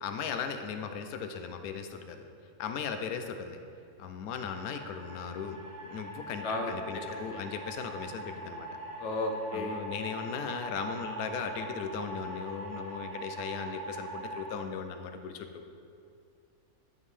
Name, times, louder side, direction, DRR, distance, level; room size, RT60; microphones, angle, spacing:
voice 1, 0.0-2.2 2.6-3.6 4.0-5.6 5.8-8.7 9.5-15.6, left 6 dB, 90° left, 7 dB, 1.1 m, -37 dB
sound 1, 4.3-14.5, right 2 dB, 35° right, 0.9 m, -42 dB
voice 2, 7.1-7.4 9.0-9.8, left 2 dB, 60° left, 3 dB, 0.9 m, -34 dB
11.0 x 5.3 x 3.2 m, 2.4 s
omnidirectional pair, 1.5 m